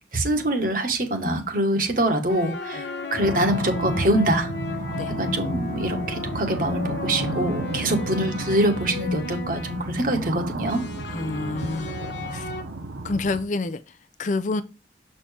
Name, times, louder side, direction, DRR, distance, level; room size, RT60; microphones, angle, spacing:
voice 1, 0.1-2.8 3.1-4.5 5.2-10.8, right 1 dB, 45° right, 1.4 m, -24 dB
sound 1, 2.3-10.2 10.7-12.6, left 3 dB, 65° left, 0.9 m, -35 dB
sound 2, 3.2-13.4, right 2 dB, 80° right, 0.8 m, -33 dB
voice 2, 11.1-12.0 12.3-12.5 13.0-14.6, left 3 dB, 40° left, 0.4 m, -28 dB
7.5 x 4.3 x 3.4 m
head